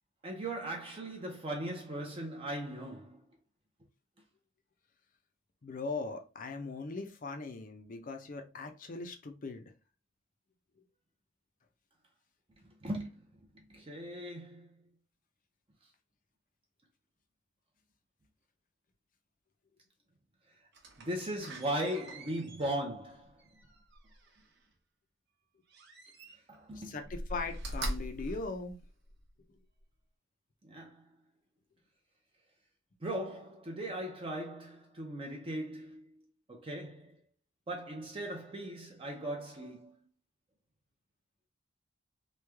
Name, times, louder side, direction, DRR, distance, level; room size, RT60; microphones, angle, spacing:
voice 1, 0.2-3.2 12.6-14.7 21.0-23.4 26.5-27.0 30.6-31.0 33.0-36.1 36.5-37.1 37.7-39.9, right 1 dB, 30° right, 0.6 m, -38 dB
voice 2, 5.6-9.7 26.7-28.8, left 3 dB, 40° left, 0.5 m, -40 dB
Slam, 20.7-24.6 25.7-26.6 27.0-29.3 29.8-29.9, right 1 dB, 60° right, 0.9 m, -43 dB
3.1 x 2.3 x 3.3 m
head